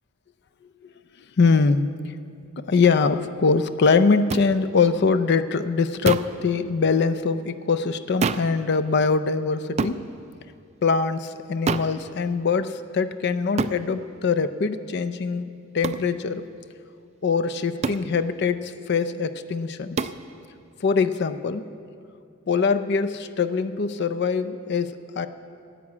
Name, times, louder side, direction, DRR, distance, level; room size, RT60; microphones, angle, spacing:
voice 1, 1.4-2.2 2.6-10.0 10.8-15.5 15.7-16.5 17.2-20.1 20.8-21.6 22.5-25.3, left 4 dB, 55° left, 12 dB, 0.4 m, -23 dB
sound 1, 4.3-4.5 6.0-6.4 8.2-8.6 9.8-10.0 11.7-12.0 13.6-13.8 15.8-16.1 17.8-18.1 20.0-20.2, right 4 dB, 30° right, 0.3 m, -26 dB
11.0 x 8.4 x 8.6 m, 2.4 s
head